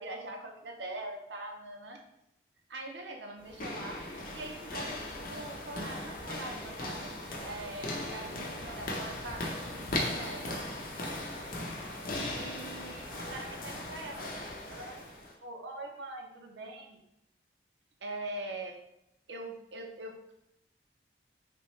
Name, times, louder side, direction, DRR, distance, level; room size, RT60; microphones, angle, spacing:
voice 1, 0.0-2.0 2.7-4.0 4.3-7.1 7.4-10.6 12.3-14.3 14.7-15.1 15.4-17.0 18.0-18.7 19.3-20.3, right 2 dB, 80° right, 2 dB, 0.6 m, -43 dB
sound 1, 3.4-15.3, left 1 dB, 50° left, 0.6 m, -38 dB
3.5 x 2.9 x 3.0 m, 0.82 s
head